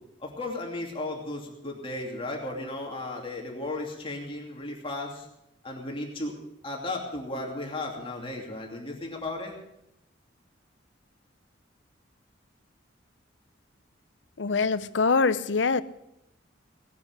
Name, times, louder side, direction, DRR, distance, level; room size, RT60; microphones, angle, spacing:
voice 1, 0.2-5.3 5.6-6.4 6.6-9.6, left 2 dB, 30° left, 0 dB, 2.7 m, -35 dB
voice 2, 14.4-15.8, left 4 dB, 65° left, 14 dB, 0.7 m, -24 dB
18.5 x 9.6 x 6.5 m, 0.84 s
head